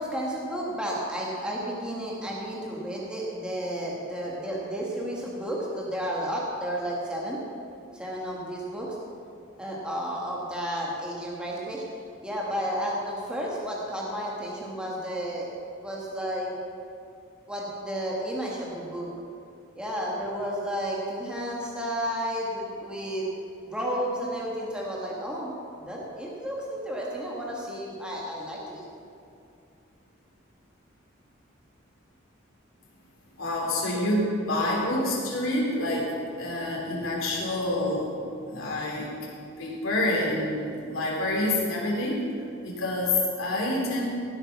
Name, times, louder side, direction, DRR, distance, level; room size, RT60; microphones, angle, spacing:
voice 1, 0.0-7.4 7.9-8.9 9.6-11.8 12.2-15.5 15.8-16.5 17.5-19.1 19.8-23.3 23.7-28.8, equal, 5° right, -4 dB, 1.8 m, -32 dB
voice 2, 33.4-36.1 36.4-38.1 38.5-39.2 39.6-42.2 42.6-44.0, left 1 dB, 85° left, -4 dB, 3.9 m, -27 dB
17.0 x 8.6 x 6.0 m, 2.6 s
head